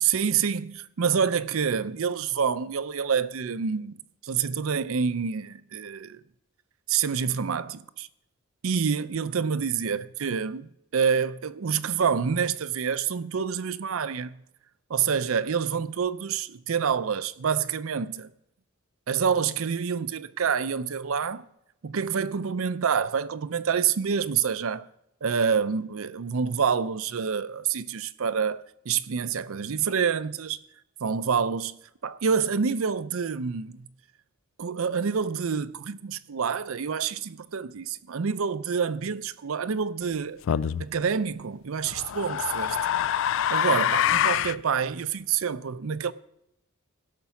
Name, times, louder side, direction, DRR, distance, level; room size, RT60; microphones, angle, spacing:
voice 1, 0.0-6.2 6.9-8.1 8.6-14.4 14.9-18.3 19.1-21.5 21.8-24.9 25.2-30.6 31.0-31.7 32.0-33.9 34.6-40.4 40.8-42.8 43.5-46.1, right 6 dB, 70° right, 0.5 m, -27 dB
sound 1, 40.5-40.8 41.9-44.6, left 9 dB, 60° left, 0.3 m, -25 dB
17.0 x 5.9 x 5.8 m
head